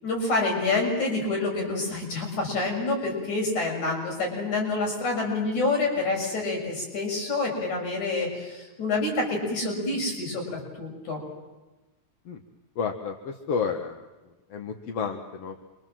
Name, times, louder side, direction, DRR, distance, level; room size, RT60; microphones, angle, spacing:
voice 1, 0.0-11.2, left 3 dB, 85° left, 0 dB, 8.3 m, -27 dB
voice 2, 12.8-14.1 14.5-15.6, left 6 dB, 60° left, 3 dB, 2.4 m, -31 dB
28.5 x 24.5 x 7.7 m, 1.1 s
omnidirectional pair, 3.3 m